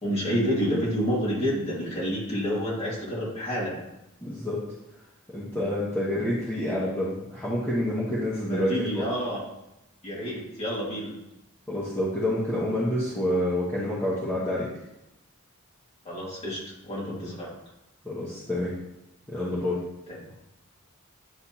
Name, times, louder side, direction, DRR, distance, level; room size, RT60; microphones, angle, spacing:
voice 1, 0.0-3.8 8.5-9.4 10.0-11.1 16.0-17.5, equal, 30° left, -6 dB, 2.0 m, -29 dB
voice 2, 4.2-4.6 5.3-9.0 11.7-14.7 18.0-18.8 19.3-19.8, left 1 dB, 10° left, -9 dB, 1.1 m, -28 dB
9.7 x 3.4 x 2.9 m, 0.91 s
head